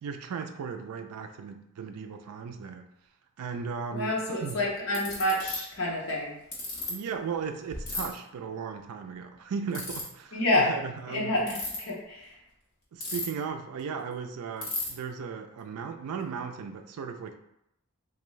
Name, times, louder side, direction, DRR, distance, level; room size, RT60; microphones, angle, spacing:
voice 1, 0.0-2.9 3.4-4.1 4.4-4.6 6.9-11.4 12.9-17.3, right 6 dB, 85° right, 6 dB, 0.4 m, -36 dB
voice 2, 3.9-6.3 10.3-10.8 11.1-12.3, left 1 dB, 65° left, -5 dB, 0.8 m, -28 dB
Ratchet pawl, 4.9-5.6 6.5-6.9 7.9-8.0 9.7-10.0 11.4-11.8 13.0-13.5 13.8-13.9 14.1-14.2 14.6-14.9, left 3 dB, 45° left, 1.2 m, -33 dB
3.5 x 2.6 x 3.1 m, 0.81 s
head